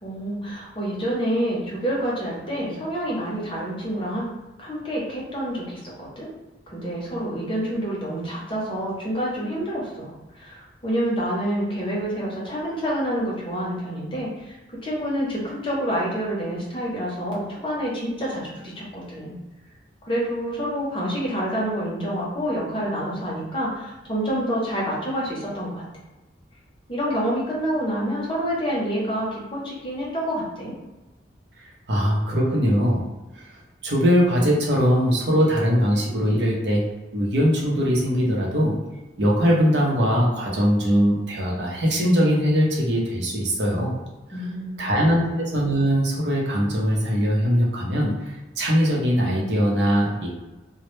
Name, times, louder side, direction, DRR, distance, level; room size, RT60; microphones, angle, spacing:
voice 1, 0.0-4.2 4.6-6.3 6.7-14.6 14.8-19.3 20.0-25.8 26.9-30.7 44.3-45.3, equal, 30° left, -5 dB, 0.6 m, -28 dB
voice 2, 31.9-33.1 33.3-33.6 33.8-36.8 37.1-38.8 39.2-43.9 44.8-50.3, equal, 70° right, -2 dB, 0.6 m, -21 dB
2.0 x 2.0 x 3.0 m, 1.1 s
head